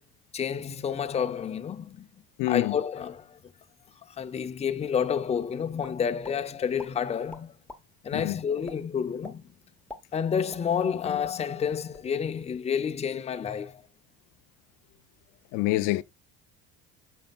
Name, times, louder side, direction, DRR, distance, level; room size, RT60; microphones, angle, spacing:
voice 1, 0.3-2.1 2.5-3.4 4.1-7.5 8.0-9.5 10.1-13.8, left 7 dB, 20° left, 0.5 m, -29 dB
voice 2, 2.4-2.8 8.1-8.4 15.5-16.0, left 19 dB, 65° left, 0.5 m, -26 dB
sound 1, 5.8-6.4 6.8-6.9 7.3-7.8 8.2-8.3 8.6-8.8 9.2-9.4 9.7-11.0 11.2-11.4 11.7-12.1, left 2 dB, 5° left, 1.0 m, -43 dB
8.8 x 5.5 x 2.3 m
supercardioid pair, 115°, 34 cm